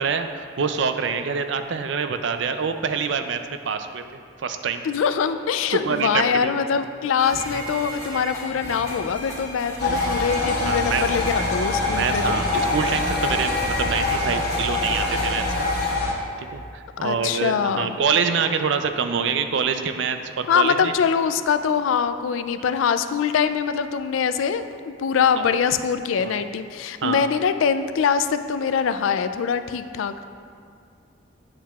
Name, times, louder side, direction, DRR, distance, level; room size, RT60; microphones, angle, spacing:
voice 1, 0.0-3.4 3.7-4.0 4.4-4.8 5.7-6.6 10.6-11.0 12.0-15.7 16.4-20.9 25.4-25.5 26.2-26.4 27.0-27.2, right 6 dB, 70° right, 8 dB, 0.4 m, -25 dB
voice 2, 4.8-12.4 17.0-18.0 20.5-30.2, left 6 dB, 90° left, 10 dB, 0.3 m, -23 dB
sound 1, 7.2-15.9, right 1 dB, 15° left, 1.4 m, -35 dB
sound 2, 9.8-16.1, left 2 dB, 55° left, 1.1 m, -24 dB
8.9 x 7.2 x 2.4 m, 2.4 s
head